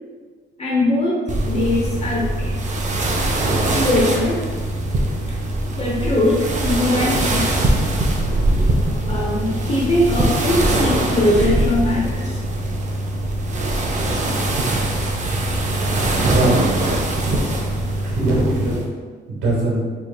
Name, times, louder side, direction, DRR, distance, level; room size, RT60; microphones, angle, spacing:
voice 1, 0.6-1.2 1.5-2.6 3.7-4.4 5.8-7.7 9.0-12.4 13.7-13.9, left 1 dB, 30° left, -5 dB, 0.8 m, -21 dB
sound 1, 1.3-18.9, right 1 dB, 40° right, 0.6 m, -22 dB
voice 2, 16.2-16.9 18.0-18.8 19.3-19.9, right 2 dB, 75° right, -5 dB, 1.1 m, -21 dB
4.5 x 3.1 x 2.3 m, 1.5 s
cardioid pair, 90°, 20 cm